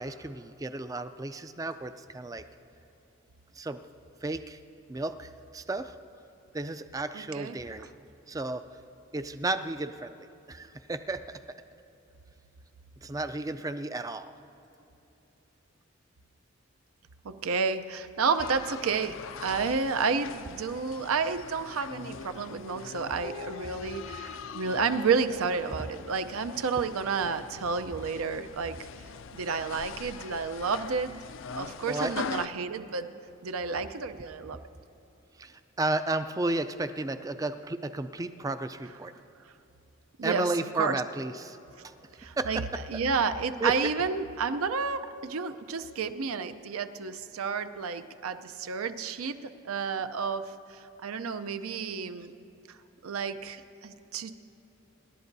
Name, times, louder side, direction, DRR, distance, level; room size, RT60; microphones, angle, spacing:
voice 1, 0.0-2.4 3.5-3.8 4.2-4.6 4.9-6.0 6.5-7.9 8.3-8.6 9.1-10.1 10.5-11.2 13.0-14.3 31.9-32.1 35.4-39.1 40.2-41.6 41.8-41.9 42.4-42.5 43.6-43.7, right 2 dB, 15° right, 10 dB, 0.3 m, -33 dB
voice 2, 7.1-7.6 17.2-28.8 29.3-31.2 31.5-33.1 33.4-34.6 40.2-41.0 42.2-42.6 42.9-52.3 52.7-52.8 53.0-54.3, right 5 dB, 85° right, 10 dB, 0.6 m, -31 dB
sound 1, 18.4-32.5, left 6 dB, 65° left, 0.4 m, -42 dB
26.0 x 11.5 x 2.7 m, 3.0 s
head